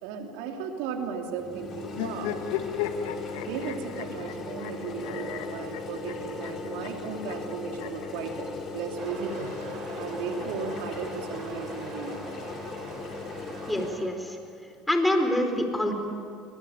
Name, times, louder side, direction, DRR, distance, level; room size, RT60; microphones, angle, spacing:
voice 1, 0.0-2.5 3.4-8.5 8.7-9.5 10.0-12.3, right 6 dB, 80° right, 3 dB, 3.1 m, -35 dB
sound 1, 1.4-13.9, left 3 dB, 50° left, 4.4 m, -38 dB
sound 2, 1.9-8.1 9.1-10.2, left 10 dB, 80° left, 1.6 m, -36 dB
sound 3, 9.0-14.1, right 5 dB, 60° right, 3.9 m, -44 dB
voice 2, 13.7-14.4 14.9-15.9, left 1 dB, 10° left, 5 dB, 4.5 m, -26 dB
22.5 x 20.0 x 8.9 m, 2.4 s
supercardioid pair, 85°, 0 cm